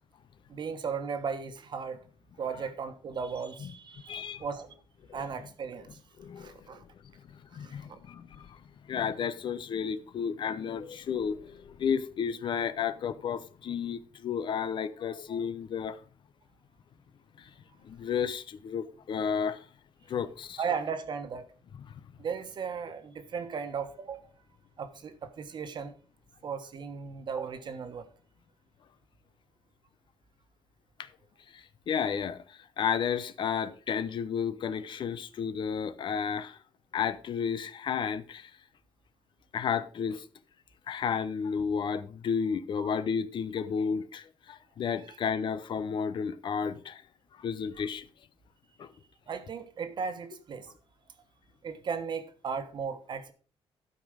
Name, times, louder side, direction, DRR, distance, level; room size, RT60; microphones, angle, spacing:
voice 1, 0.5-2.0 2.4-4.7 5.1-6.0 6.4-6.8 7.5-8.0 20.6-21.5 22.2-24.2 24.8-25.9 26.4-28.1 42.8-42.9 45.1-45.2 49.3-50.7 51.6-53.3, right 6 dB, 50° right, 1.4 m, -36 dB
voice 2, 4.1-4.4 5.1-5.2 6.2-6.8 7.3-8.6 8.9-16.0 17.4-17.5 17.8-19.7 20.1-20.6 21.7-21.9 31.0-31.1 31.5-36.6 36.9-38.5 39.5-40.2 40.9-47.0 47.3-48.1 48.8-48.9, left 7 dB, 50° left, 0.7 m, -32 dB
12.5 x 5.3 x 5.0 m
cardioid pair, 130°, 10 cm